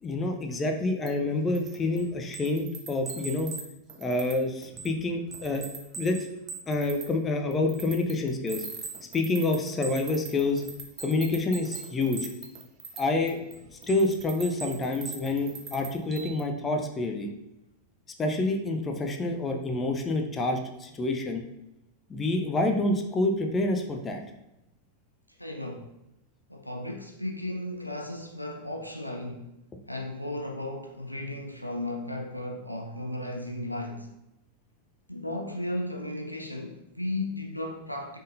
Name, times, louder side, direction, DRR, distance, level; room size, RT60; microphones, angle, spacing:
voice 1, 0.0-3.5 4.0-5.7 6.0-6.3 6.7-8.6 9.1-10.6 11.0-12.3 13.0-13.4 13.9-17.3 18.2-21.4 22.1-24.2, left 2 dB, 20° left, 0.6 m, -27 dB
sound 1, 1.1-1.2 1.6-3.6 3.9-4.4 4.6-5.0 5.3-7.1 7.5-13.0 13.3-16.4, right 5 dB, 25° right, 0.8 m, -41 dB
voice 2, 25.4-25.9 26.5-29.5 29.9-34.1 35.1-38.2, left 1 dB, 90° left, 0.5 m, -35 dB
5.3 x 3.8 x 2.6 m
figure-of-eight pair, 90°, 0 cm